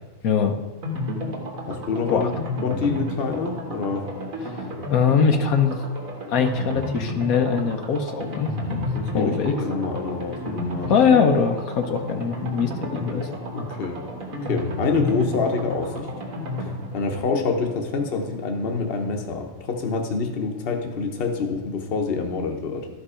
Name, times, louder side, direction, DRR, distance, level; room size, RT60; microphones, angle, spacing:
voice 1, 0.2-0.6 2.1-2.3 4.9-5.8 6.3-8.9 9.1-9.5 10.9-13.3, left 6 dB, 80° left, 5 dB, 1.2 m, -21 dB
sound 1, 0.8-19.4 19.7-19.8 20.1-20.2, left 1 dB, 70° right, 1.9 m, -32 dB
voice 2, 1.7-2.3 2.6-4.1 8.9-10.9 13.5-14.0 14.3-16.1 16.6-22.9, left 4 dB, 45° left, 3 dB, 1.1 m, -26 dB
12.5 x 5.2 x 4.9 m, 1.2 s
omnidirectional pair, 1.5 m